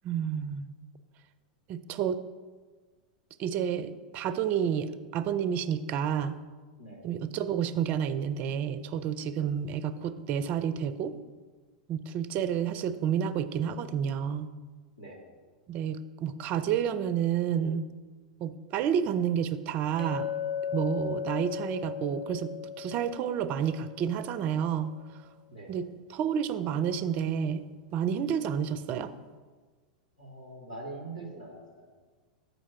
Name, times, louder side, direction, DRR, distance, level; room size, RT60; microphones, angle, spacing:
voice 1, 0.0-0.7 1.7-2.2 3.4-6.4 7.0-11.2 11.9-14.5 15.7-17.8 18.4-20.3 20.7-24.9 25.7-27.6 27.9-29.1, right 8 dB, 35° right, 13 dB, 0.4 m, -30 dB
Chink clink, 20.0-24.4, left 8 dB, 60° left, 1.6 m, -36 dB
voice 2, 30.2-31.9, right 2 dB, 90° left, -2 dB, 1.4 m, -43 dB
7.3 x 5.1 x 4.8 m, 1.4 s
figure-of-eight pair, 90°, 4 cm